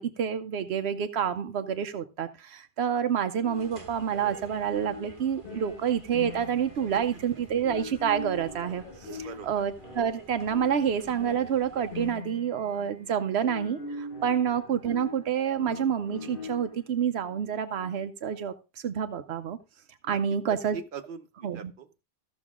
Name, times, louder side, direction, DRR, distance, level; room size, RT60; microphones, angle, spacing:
voice 1, 0.0-18.5 18.8-19.6 20.0-20.8 21.4-21.7, right 8 dB, 85° right, 9 dB, 1.0 m, -28 dB
sound 1, 3.4-16.9, left 3 dB, 60° left, 1.8 m, -42 dB
sound 2, 3.4-12.3, right 3 dB, 30° right, 1.5 m, -50 dB
voice 2, 5.5-5.8 6.9-7.2 9.2-9.6 14.2-14.5 20.0-20.2 20.7-22.0, right 6 dB, 55° right, 7 dB, 1.1 m, -43 dB
14.5 x 6.1 x 3.6 m, 0.29 s
omnidirectional pair, 1.1 m